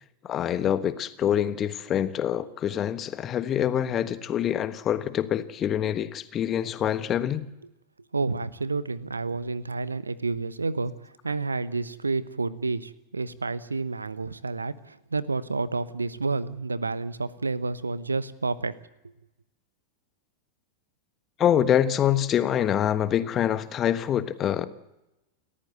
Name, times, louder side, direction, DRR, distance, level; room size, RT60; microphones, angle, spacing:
voice 1, 0.3-7.5 21.4-24.7, left 10 dB, 30° left, 1.3 m, -25 dB
voice 2, 8.1-18.7, right 3 dB, 80° right, 0.9 m, -30 dB
29.5 x 14.0 x 8.0 m
figure-of-eight pair, 90°, 0 cm